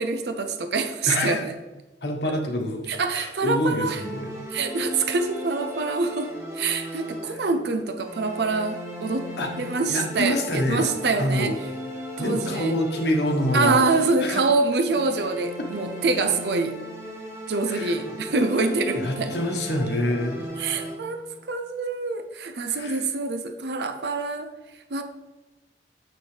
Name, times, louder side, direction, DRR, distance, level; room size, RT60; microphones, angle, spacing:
voice 1, 0.0-1.4 2.9-4.0 4.5-9.3 9.6-11.5 12.2-12.7 13.5-16.8 17.5-19.3 20.6-24.5 24.9-25.0, right 3 dB, 70° right, 8 dB, 0.6 m, -25 dB
voice 2, 1.1-1.4 2.0-2.9 3.1-4.3 7.2-7.4 9.4-9.6 9.9-10.9 11.2-11.6 12.2-13.8 14.2-14.4 17.7-17.9 18.9-20.6 22.7-23.0, left 1 dB, 70° left, 2 dB, 1.2 m, -26 dB
sound 1, 3.9-7.6 8.0-14.5 14.9-21.3, equal, 15° right, 1.2 m, -37 dB
7.5 x 6.3 x 3.3 m, 1.1 s
head